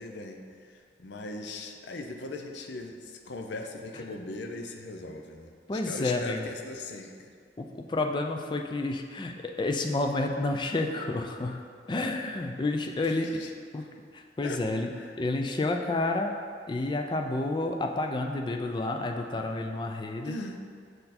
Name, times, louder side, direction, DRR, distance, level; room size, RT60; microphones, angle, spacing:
voice 1, 0.0-7.3 13.0-13.9 14.4-14.6 14.9-15.1 20.2-20.6, left 2 dB, 70° left, 3 dB, 0.6 m, -40 dB
voice 2, 5.7-6.4 7.6-11.6 11.9-13.3 13.7-13.9 14.1-14.9 15.2-16.3 16.7-20.4, left 2 dB, 25° left, 3 dB, 0.3 m, -30 dB
6.6 x 4.3 x 4.2 m, 2.1 s
head